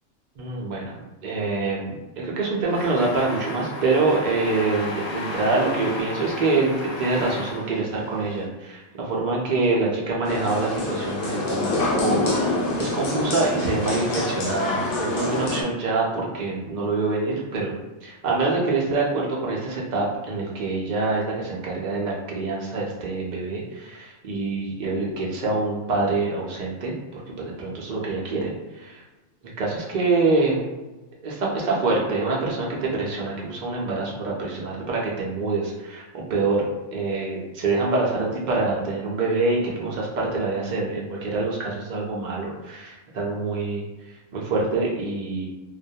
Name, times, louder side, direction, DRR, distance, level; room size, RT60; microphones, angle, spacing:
voice 1, 0.4-29.0 29.6-30.7 31.2-45.5, right 3 dB, 80° right, -3 dB, 0.4 m, -25 dB
sound 1, 2.7-8.4, left 2 dB, 90° left, 1.0 m, -34 dB
sound 2, 10.2-15.6, left 2 dB, 60° left, 0.6 m, -26 dB
2.3 x 2.1 x 2.7 m, 1.1 s
omnidirectional pair, 1.3 m